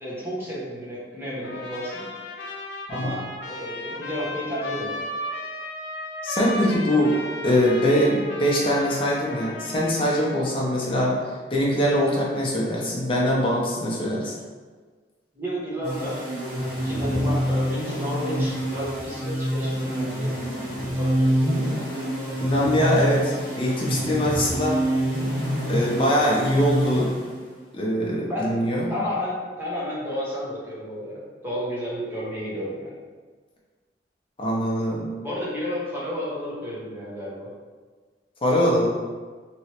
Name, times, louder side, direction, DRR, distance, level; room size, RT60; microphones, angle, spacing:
voice 1, 0.0-2.1 2.9-4.9 15.3-16.2 16.8-20.3 20.9-21.4 28.3-28.6 28.9-33.0 35.2-37.5, equal, 10° right, -8 dB, 0.9 m, -32 dB
Trumpet, 1.4-10.6, left 1 dB, 75° left, 0.4 m, -35 dB
voice 2, 6.2-7.2 7.4-11.1 11.5-14.3 17.1-17.3 22.4-24.8 25.7-27.1 27.7-28.9 34.4-35.1 38.4-38.9, equal, 30° left, -5 dB, 0.7 m, -22 dB
sound 1, 15.8-27.6, equal, 70° right, 1.4 m, -26 dB
3.1 x 3.0 x 2.8 m, 1.5 s
head